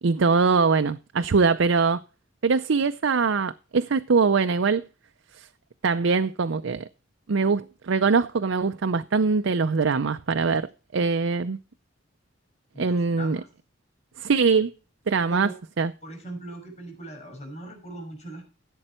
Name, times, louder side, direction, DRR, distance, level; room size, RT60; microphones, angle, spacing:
voice 1, 0.0-2.0 2.4-4.8 5.4-5.5 5.8-6.9 7.3-11.6 12.8-13.4 14.2-14.7 15.1-15.5 15.8-15.9, right 4 dB, 80° right, 0.6 m, -22 dB
voice 2, 12.7-13.5 15.3-15.5 16.0-18.5, right 1 dB, 35° left, 5.7 m, -39 dB
15.5 x 7.9 x 4.3 m
head